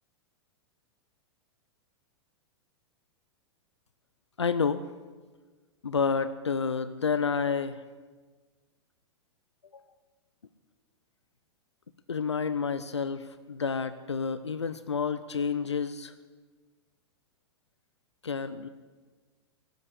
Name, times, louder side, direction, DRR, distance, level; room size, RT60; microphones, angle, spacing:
voice 1, 4.4-4.8 5.8-7.8 9.7-9.8 12.1-16.1 18.2-18.7, left 5 dB, 75° left, 13 dB, 0.6 m, -29 dB
18.0 x 8.7 x 8.3 m, 1.4 s
figure-of-eight pair, 100°, 14 cm